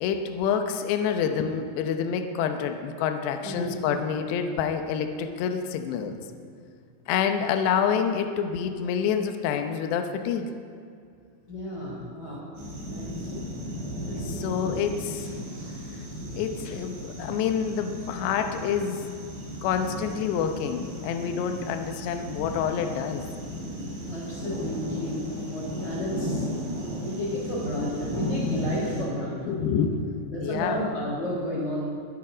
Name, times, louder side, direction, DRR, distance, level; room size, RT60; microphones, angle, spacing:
voice 1, 0.0-6.2 7.1-10.5 13.3-13.5 14.2-15.3 16.4-19.1 19.3-23.3 29.5-30.1 30.4-30.8, left 7 dB, 80° left, 7 dB, 2.9 m, -27 dB
voice 2, 3.4-3.8 11.5-12.5 12.9-13.3 24.0-26.4 27.0-29.5 30.3-31.8, equal, 20° left, -8 dB, 2.9 m, -32 dB
sound 1, 12.6-29.1, equal, 80° right, 6.8 m, -35 dB
23.0 x 8.2 x 5.0 m, 2.3 s
omnidirectional pair, 5.1 m